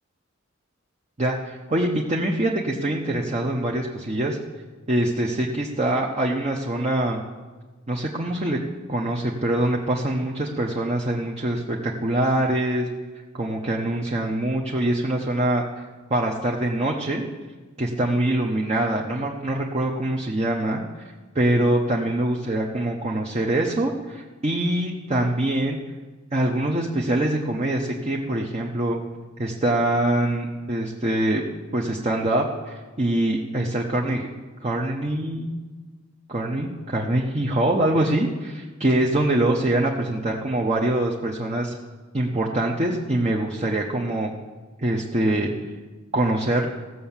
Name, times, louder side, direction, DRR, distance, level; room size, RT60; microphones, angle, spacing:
voice 1, 1.2-4.4 4.9-7.2 7.9-8.6 8.9-12.9 13.3-15.6 16.1-17.3 17.8-25.8 26.3-29.0 29.4-31.4 31.7-34.3 34.6-35.5 36.3-41.7 42.1-44.3 44.8-45.5 46.1-46.7, right 1 dB, 30° right, -1 dB, 0.9 m, -24 dB
15.5 x 7.0 x 7.3 m, 1.3 s
head